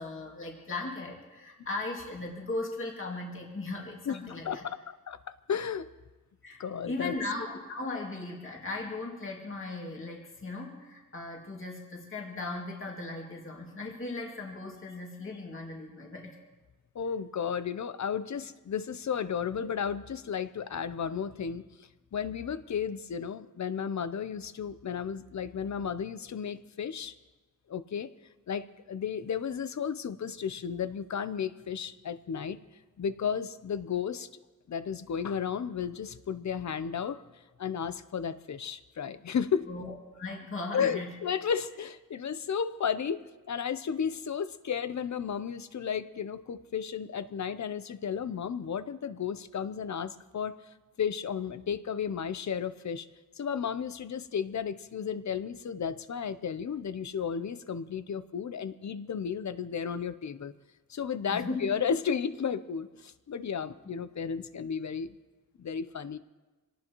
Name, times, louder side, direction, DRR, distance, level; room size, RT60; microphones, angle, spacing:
voice 1, 0.0-4.6 6.4-16.4 39.7-41.1 61.3-61.7, left 2 dB, 40° left, -1 dB, 2.3 m, -37 dB
voice 2, 4.1-5.2 5.5-5.9 6.6-7.1 16.9-27.1 27.7-28.1 28.5-32.6 33.0-34.3 34.7-37.2 37.6-39.7 40.7-50.6 51.0-53.1 53.4-60.5 60.9-65.2 65.6-66.2, left 7 dB, 60° left, 13 dB, 0.7 m, -33 dB
25.5 x 18.5 x 3.0 m, 1.2 s
wide cardioid pair, 150°, 33 cm